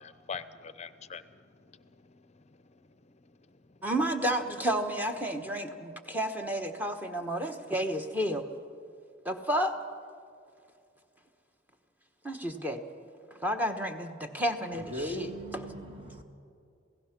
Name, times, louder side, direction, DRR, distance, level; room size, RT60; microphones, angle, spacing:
voice 1, 0.0-2.8, left 6 dB, 35° left, 14 dB, 0.6 m, -45 dB
voice 2, 3.8-8.4 9.2-9.7 12.2-12.8 13.4-15.3, right 1 dB, 10° right, 5 dB, 1.1 m, -31 dB
voice 3, 14.7-16.2, equal, 30° right, 3 dB, 1.6 m, -38 dB
27.5 x 17.0 x 6.0 m, 2.4 s
head